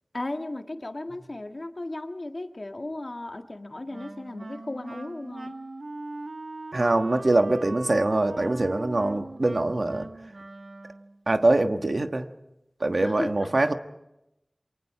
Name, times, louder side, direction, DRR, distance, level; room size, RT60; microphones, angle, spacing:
voice 1, 0.1-5.6 13.0-13.5, left 2 dB, 60° left, 5 dB, 1.7 m, -35 dB
Wind instrument woodwind instrument, 3.9-11.2, right 2 dB, 85° right, 1.1 m, -40 dB
voice 2, 6.7-10.1 11.3-12.3 12.8-13.7, right 2 dB, 70° right, 7 dB, 1.3 m, -23 dB
28.5 x 23.5 x 4.8 m, 0.88 s
wide cardioid pair, 50°, 0 cm